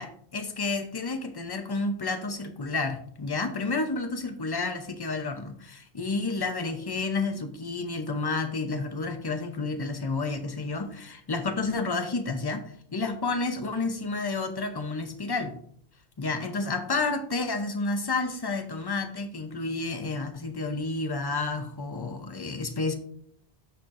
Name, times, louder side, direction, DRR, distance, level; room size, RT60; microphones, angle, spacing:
voice 1, 0.0-15.5 16.2-23.0, left 3 dB, 25° left, 6 dB, 0.7 m, -30 dB
13.0 x 4.4 x 2.6 m, 0.62 s
omnidirectional pair, 1.1 m